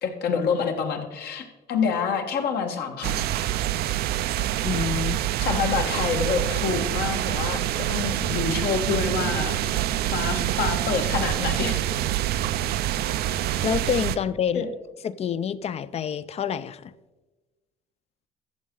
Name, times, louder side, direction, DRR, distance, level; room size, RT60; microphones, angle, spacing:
voice 1, 0.0-3.2 5.4-9.6 10.1-11.8 14.5-14.7, left 6 dB, 70° left, 1.5 m, -27 dB
sound 1, 3.0-14.2, right 13 dB, 70° right, 0.4 m, -26 dB
voice 2, 4.6-5.2 13.6-14.7 15.0-16.9, left 8 dB, 40° left, 0.4 m, -27 dB
13.5 x 7.2 x 3.8 m
cardioid pair, 110°, 17 cm